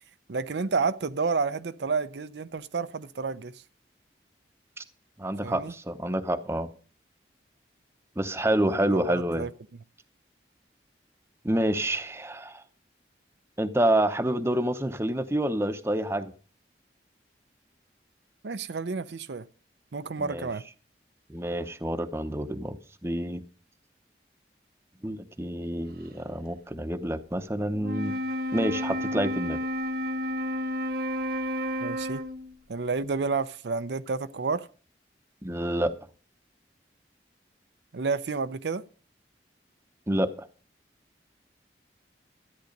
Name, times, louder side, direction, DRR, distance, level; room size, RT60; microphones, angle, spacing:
voice 1, 0.3-3.5 5.4-5.7 8.7-9.5 18.4-19.4 19.9-20.6 31.8-32.2 32.7-34.7 37.9-38.8, right 4 dB, 75° right, 0.6 m, -30 dB
voice 2, 5.2-6.7 8.2-9.5 11.4-12.6 13.6-16.3 20.2-20.5 21.3-23.4 25.0-28.1 28.5-29.6 35.4-35.9 40.1-40.5, right 1 dB, 15° right, 0.7 m, -28 dB
Wind instrument woodwind instrument, 27.7-32.5, equal, 55° right, 1.2 m, -31 dB
13.0 x 9.4 x 5.2 m
head